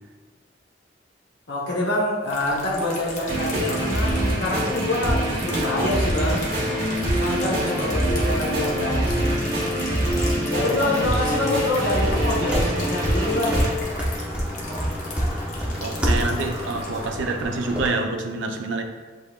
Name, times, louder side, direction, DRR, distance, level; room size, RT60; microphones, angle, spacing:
voice 1, 1.5-6.5 7.1-9.4 10.5-13.6, left 1 dB, 70° left, -5 dB, 0.8 m, -26 dB
sound 1, 2.3-17.1, left 1 dB, 40° left, 0.8 m, -37 dB
sound 2, 3.3-13.7, right 1 dB, 50° right, 1.4 m, -24 dB
sound 3, 12.4-17.9, equal, 5° right, 0.5 m, -28 dB
voice 2, 15.8-18.8, right 3 dB, 80° right, 5 dB, 0.5 m, -27 dB
7.6 x 2.7 x 2.2 m, 1.4 s
head